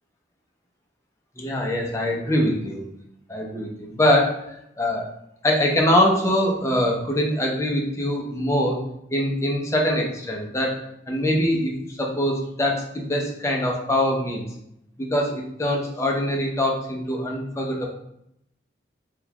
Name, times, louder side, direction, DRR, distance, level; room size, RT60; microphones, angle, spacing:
voice 1, 1.4-2.8 3.3-5.1 5.4-8.8 9.1-14.5 15.0-17.9, left 1 dB, 15° left, -1 dB, 0.5 m, -23 dB
3.7 x 2.3 x 2.8 m, 0.78 s
head